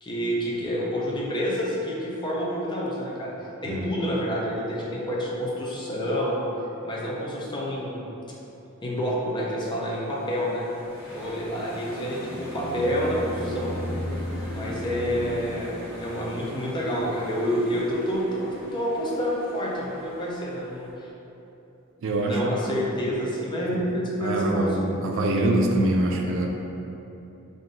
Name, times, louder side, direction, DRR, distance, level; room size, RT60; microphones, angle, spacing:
voice 1, 0.0-3.3 3.6-6.5 6.8-8.1 8.8-10.7 11.1-13.8 14.5-15.7 16.0-21.1 22.3-24.7, equal, 20° left, -5 dB, 0.5 m, -28 dB
sound 1, 9.7-20.9, equal, 65° left, 1.0 m, -44 dB
sound 2, 11.6-16.5, left 1 dB, 85° left, 0.6 m, -34 dB
voice 2, 22.0-22.9 23.7-23.9 24.2-26.5, right 1 dB, 65° right, 1 dB, 0.4 m, -24 dB
3.7 x 2.6 x 3.7 m, 3.0 s
head